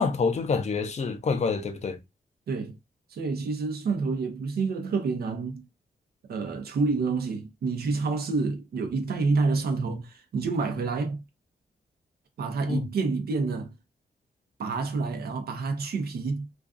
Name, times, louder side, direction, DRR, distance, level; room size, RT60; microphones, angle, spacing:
voice 1, 0.0-2.0 12.7-12.9, left 4 dB, 45° left, 0.5 m, -27 dB
voice 2, 3.1-5.6 6.3-11.2 12.4-13.7 14.6-16.5, right 4 dB, 80° right, 0.7 m, -28 dB
2.4 x 2.3 x 2.3 m
cardioid pair, 85°, 16 cm